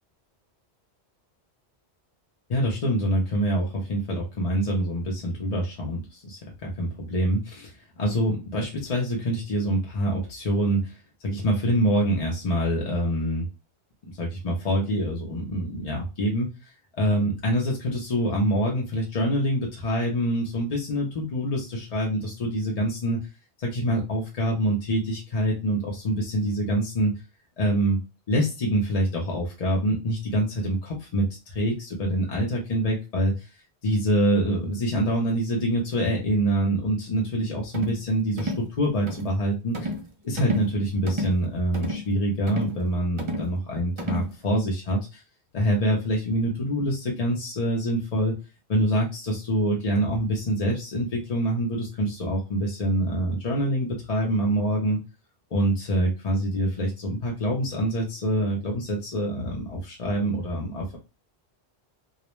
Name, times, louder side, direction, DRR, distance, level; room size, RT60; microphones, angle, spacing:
voice 1, 2.5-13.5 14.0-16.5 17.0-23.2 23.6-27.1 27.6-28.0 28.3-33.5 33.8-39.9 40.2-45.2 45.5-48.3 48.7-55.0 55.5-61.0, right 1 dB, 45° left, -2 dB, 0.6 m, -25 dB
sound 1, 37.7-38.0 38.4-38.7 39.1-39.3 39.7-40.1 40.4-40.7 41.1-41.4 41.7-42.1 42.5-42.8 43.2-43.5 44.0-44.3, equal, 55° right, 0.3 m, -31 dB
2.4 x 2.1 x 3.0 m, 0.29 s
omnidirectional pair, 1.1 m